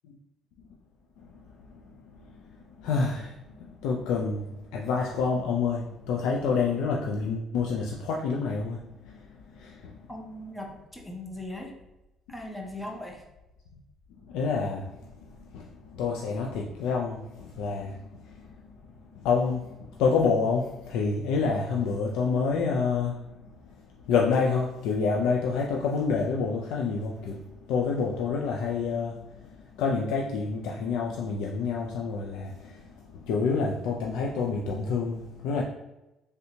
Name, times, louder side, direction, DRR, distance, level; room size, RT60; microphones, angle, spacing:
voice 1, 2.7-3.3 3.8-10.1 14.3-18.7 19.1-23.3 24.1-35.6, left 5 dB, 90° left, -1 dB, 0.3 m, -28 dB
voice 2, 10.1-11.7 12.3-13.2, left 1 dB, 5° left, 0 dB, 0.5 m, -39 dB
3.3 x 2.7 x 2.7 m, 0.93 s
cardioid pair, 130°, 0 cm